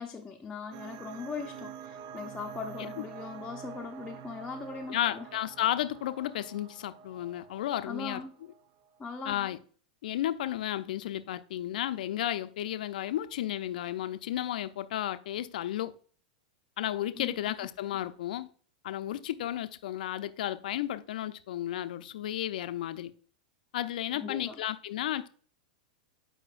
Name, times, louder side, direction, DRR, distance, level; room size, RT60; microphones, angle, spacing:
voice 1, 0.0-5.3 7.8-8.3 9.0-9.3 17.2-17.3 24.2-24.6, left 4 dB, 15° left, 0.6 m, -40 dB
sound 1, 0.7-9.0, right 7 dB, 50° right, 0.4 m, -47 dB
voice 2, 4.9-8.2 9.2-9.6 10.0-15.9 16.8-18.5 18.8-23.1 23.7-25.3, left 12 dB, 70° left, 0.5 m, -33 dB
7.7 x 5.0 x 2.4 m
hypercardioid pair, 110°, 5 cm